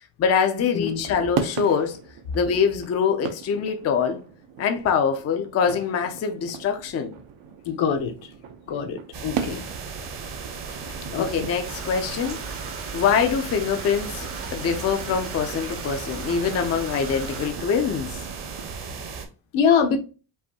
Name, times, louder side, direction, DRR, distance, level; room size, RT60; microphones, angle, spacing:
voice 1, 0.2-2.0 2.3-4.2 4.6-7.1 10.9-12.4 12.9-18.2, left 6 dB, 35° left, 0.5 m, -24 dB
sound 1, 0.8-18.7, right 7 dB, 80° right, 0.9 m, -38 dB
voice 2, 7.6-8.1 8.7-9.7 11.0-11.3 19.5-20.0, left 7 dB, 75° left, 1.0 m, -23 dB
sound 2, 9.1-19.3, right 5 dB, 55° right, 1.1 m, -36 dB
sound 3, 11.6-17.5, right 4 dB, 30° right, 0.7 m, -38 dB
5.4 x 2.6 x 2.8 m
cardioid pair, 165°, 49 cm